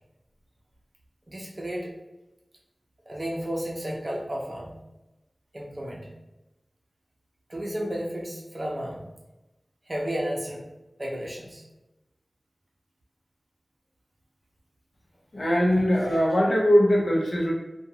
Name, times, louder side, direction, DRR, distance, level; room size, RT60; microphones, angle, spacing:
voice 1, 1.3-1.9 3.1-4.7 5.5-6.1 7.5-9.1 9.9-10.6 11.0-11.6, equal, 45° right, -2 dB, 0.6 m, -32 dB
voice 2, 15.3-17.5, equal, 65° left, -2 dB, 0.7 m, -21 dB
2.5 x 2.2 x 2.8 m, 0.99 s
wide cardioid pair, 55°, 0 cm